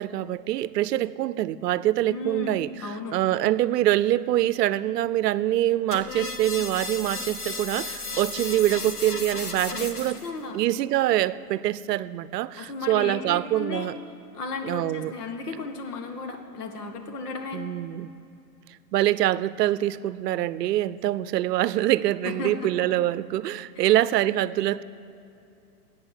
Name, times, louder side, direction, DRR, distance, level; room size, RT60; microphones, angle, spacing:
voice 1, 0.0-10.2 10.5-14.0 14.6-15.1 17.5-18.1 18.9-24.8, right 14 dB, 85° right, 18 dB, 0.6 m, -25 dB
voice 2, 2.1-3.2 9.8-10.6 12.6-13.9 14.3-17.6 22.2-22.9 23.8-23.9, left 3 dB, 75° left, 5 dB, 1.8 m, -35 dB
sound 1, 5.9-10.3, left 3 dB, 30° left, 0.9 m, -34 dB
13.5 x 8.6 x 8.1 m, 2.8 s
supercardioid pair, 175°, 47 cm